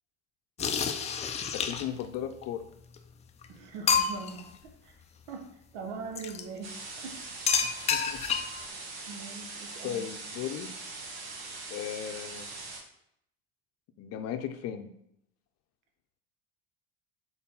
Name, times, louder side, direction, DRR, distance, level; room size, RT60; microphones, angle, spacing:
sound 1, 0.6-2.1 3.0-3.1 3.4-3.5 3.9-4.4 6.1-6.4 7.5-8.6, left 6 dB, 20° left, 0.4 m, -29 dB
voice 1, 1.5-2.6 7.6-8.2 9.8-10.7 11.7-12.5 14.0-14.9, left 9 dB, 45° left, 8 dB, 0.7 m, -36 dB
voice 2, 3.5-4.9 5.3-7.7 9.1-10.1, right 4 dB, 75° right, 3 dB, 1.1 m, -42 dB
sound 2, 6.6-12.8, right 3 dB, 55° right, 1.5 m, -42 dB
4.6 x 4.1 x 5.5 m, 0.74 s
cardioid pair, 135°, 34 cm